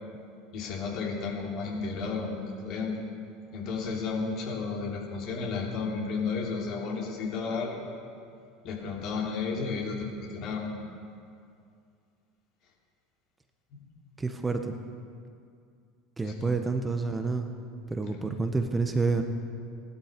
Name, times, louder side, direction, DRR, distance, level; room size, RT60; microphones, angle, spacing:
voice 1, 0.5-3.0 3.5-7.9 8.6-10.7 16.2-16.5, left 4 dB, 55° left, -1 dB, 3.3 m, -32 dB
voice 2, 14.2-14.8 16.2-17.5 17.9-19.2, right 3 dB, 15° right, 6 dB, 1.2 m, -28 dB
17.0 x 12.0 x 5.3 m, 2.4 s
hypercardioid pair, 80°, 0 cm